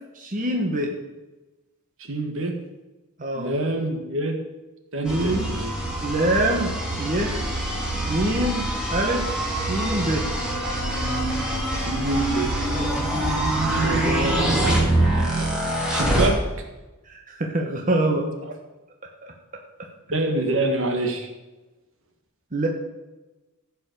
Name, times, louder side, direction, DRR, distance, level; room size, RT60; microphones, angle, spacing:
voice 1, 0.1-0.9 3.2-3.5 5.0-5.5 6.0-7.4 8.1-9.2 9.6-10.2 17.1-18.3 19.2-19.3 22.5-22.7, right 1 dB, 35° right, 1 dB, 1.3 m, -25 dB
voice 2, 2.0-2.5 3.3-4.4 4.9-5.7 11.7-12.5 13.7-15.5 15.9-16.4 20.1-21.3, right 2 dB, 60° right, 5 dB, 1.7 m, -27 dB
sound 1, 5.1-16.3, right 1 dB, 5° right, 2.8 m, -24 dB
15.0 x 5.5 x 6.8 m, 1.1 s
head